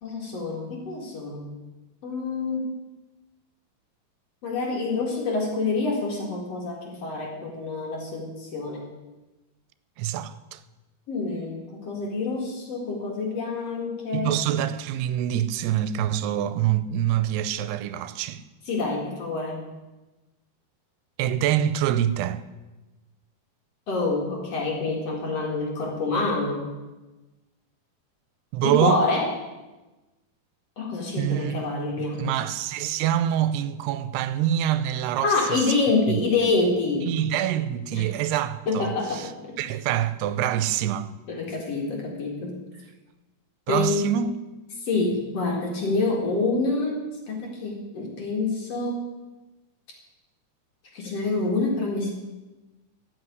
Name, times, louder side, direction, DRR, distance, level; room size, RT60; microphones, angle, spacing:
voice 1, 0.0-1.5 2.0-2.7 4.4-8.8 11.1-14.4 18.7-19.7 23.9-26.6 28.6-29.4 30.8-32.3 35.2-37.1 37.9-38.0 38.7-39.5 41.3-42.5 43.7-44.0 44.8-47.0 47.3-49.1 50.9-52.2, left 3 dB, 45° left, 2.5 m, -27 dB
voice 2, 10.0-10.6 14.1-18.4 21.2-22.4 28.5-29.0 31.2-31.5 32.0-35.6 36.1-36.2 37.0-39.3 39.6-41.1 43.7-44.3, right 11 dB, 90° right, 2.6 m, -25 dB
13.5 x 5.8 x 9.4 m
omnidirectional pair, 4.6 m